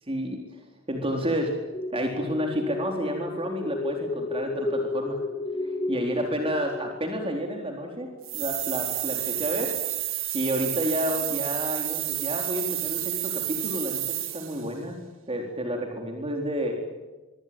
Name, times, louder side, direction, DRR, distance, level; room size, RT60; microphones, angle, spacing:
voice 1, 0.1-0.6 0.9-1.6 1.9-5.2 5.9-9.7 10.3-15.0 15.3-16.8, equal, 30° right, 2 dB, 4.0 m, -30 dB
sound 1, 1.7-8.2, left 2 dB, 25° left, 1.8 m, -33 dB
sound 2, 8.2-14.7, right 14 dB, 85° right, 3.4 m, -30 dB
25.0 x 24.5 x 8.9 m, 1.2 s
head